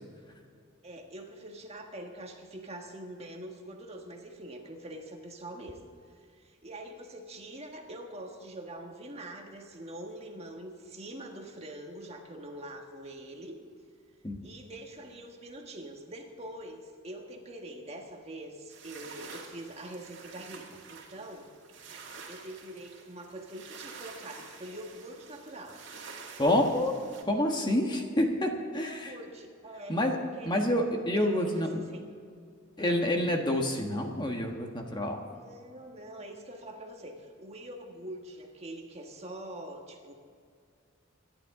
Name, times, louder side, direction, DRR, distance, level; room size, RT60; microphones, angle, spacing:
voice 1, 0.8-5.8 6.0-13.6 14.4-21.5 22.3-25.8 28.7-30.0 30.4-30.7 31.1-32.1 32.8-33.0 35.3-40.1, right 1 dB, 30° right, 2 dB, 1.6 m, -44 dB
sound 1, 18.7-27.2, right 5 dB, 65° right, 2.4 m, -48 dB
voice 2, 26.4-26.9 27.3-29.2 29.9-30.2 30.4-31.8 32.8-35.2, left 1 dB, 20° left, 2 dB, 1.4 m, -28 dB
24.5 x 11.5 x 3.8 m, 2.2 s
head